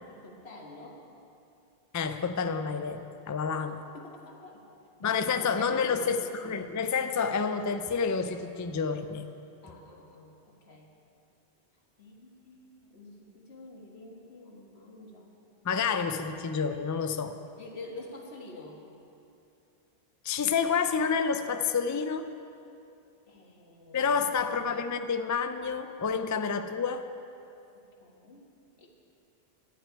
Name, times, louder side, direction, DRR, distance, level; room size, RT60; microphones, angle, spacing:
voice 1, 0.1-1.0 3.9-4.6 5.0-6.0 9.6-10.9 12.0-15.3 17.6-18.8 23.3-24.3 28.0-28.4 28.8-28.9, left 2 dB, 85° left, 0 dB, 1.8 m, -47 dB
voice 2, 1.9-3.8 5.0-9.3 15.6-17.4 20.2-22.3 23.9-27.1, left 6 dB, 30° left, 9 dB, 0.3 m, -29 dB
11.0 x 8.1 x 9.5 m, 2.7 s
omnidirectional pair, 1.1 m